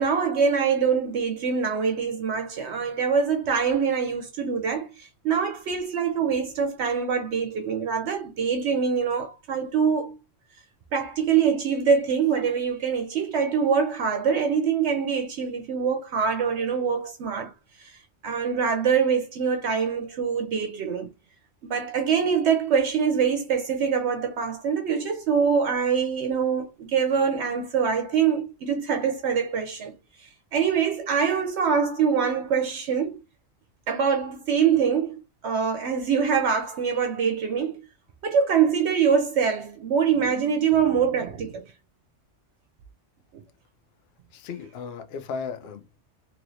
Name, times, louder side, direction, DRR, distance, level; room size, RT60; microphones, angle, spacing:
voice 1, 0.0-10.2 10.9-17.5 17.8-18.0 18.2-21.1 21.6-29.9 30.5-33.2 33.9-37.8 38.2-41.6, right 6 dB, 70° right, 0.8 m, -24 dB
voice 2, 44.3-46.0, left 5 dB, 65° left, 0.7 m, -35 dB
3.0 x 2.9 x 2.6 m
omnidirectional pair, 1.2 m